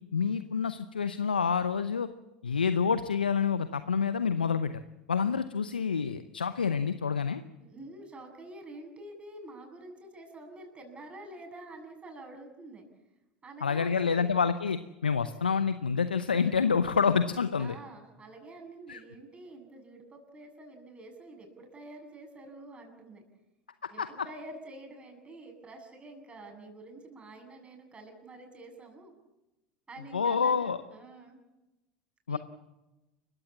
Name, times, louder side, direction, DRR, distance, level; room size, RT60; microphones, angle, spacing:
voice 1, 0.1-2.1 2.4-4.7 5.1-7.4 13.6-17.7 18.9-19.0 23.8-24.1 30.1-30.8 32.3-32.4, left 6 dB, 90° left, 12 dB, 0.8 m, -28 dB
voice 2, 7.6-12.9 13.4-14.3 17.6-23.2 23.9-29.1 29.9-31.4 32.3-32.4, right 2 dB, 25° right, 3 dB, 7.8 m, -47 dB
29.0 x 16.0 x 7.3 m, 1.0 s
hypercardioid pair, 75°, 5 cm